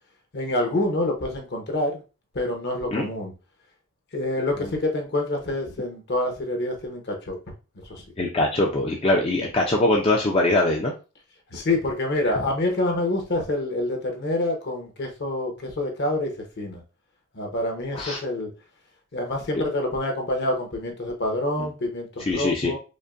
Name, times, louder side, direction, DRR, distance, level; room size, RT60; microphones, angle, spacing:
voice 1, 0.3-2.0 2.3-3.3 4.1-7.4 7.9-8.0 11.5-16.8 17.3-18.5 19.1-22.8, left 1 dB, 50° left, 3 dB, 0.9 m, -27 dB
voice 2, 8.2-10.9 17.9-18.2 21.6-21.7 22.3-22.7, left 2 dB, 25° left, 0 dB, 0.5 m, -22 dB
5.1 x 2.1 x 2.5 m, 0.31 s
head